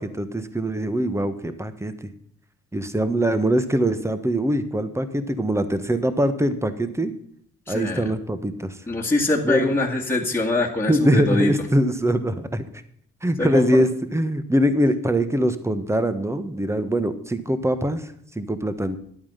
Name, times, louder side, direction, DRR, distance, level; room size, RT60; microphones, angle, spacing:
voice 1, 0.0-2.1 2.7-7.1 7.7-8.8 9.4-9.7 10.9-12.7 13.2-19.0, equal, 10° right, 11 dB, 1.4 m, -23 dB
voice 2, 7.7-8.0 8.9-11.5 13.4-13.7, left 2 dB, 10° left, -3 dB, 2.2 m, -23 dB
11.5 x 8.7 x 5.7 m, 0.67 s
cardioid pair, 90°, 30 cm